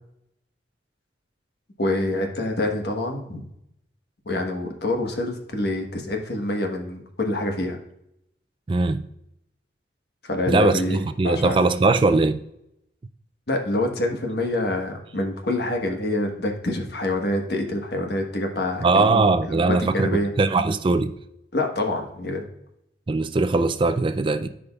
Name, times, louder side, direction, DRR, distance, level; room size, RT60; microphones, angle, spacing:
voice 1, 1.8-3.5 4.2-7.8 10.2-11.6 13.5-19.2 19.5-20.3 21.5-22.4, left 1 dB, 60° left, 1.2 m, -26 dB
voice 2, 8.7-9.1 10.5-12.4 18.8-21.1 23.1-24.5, right 3 dB, 30° right, 0.4 m, -20 dB
13.5 x 5.1 x 2.3 m
head